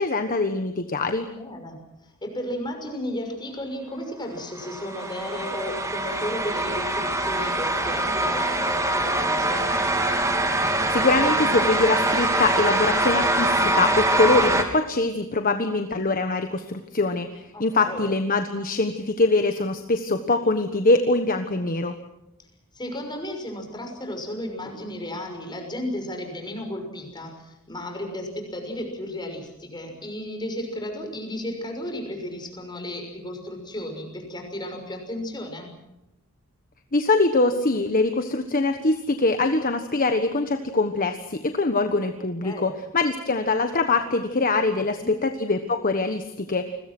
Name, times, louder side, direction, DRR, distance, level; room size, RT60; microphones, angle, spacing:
voice 1, 0.0-1.3 10.9-22.0 36.9-46.6, left 3 dB, 40° left, 7 dB, 1.3 m, -23 dB
voice 2, 1.3-9.8 17.5-18.0 22.7-35.7 42.4-42.7 44.7-45.1, left 1 dB, 20° left, 4 dB, 6.2 m, -34 dB
sound 1, 4.6-14.6, right 2 dB, 15° right, 3.0 m, -23 dB
29.5 x 22.0 x 6.2 m, 0.90 s
head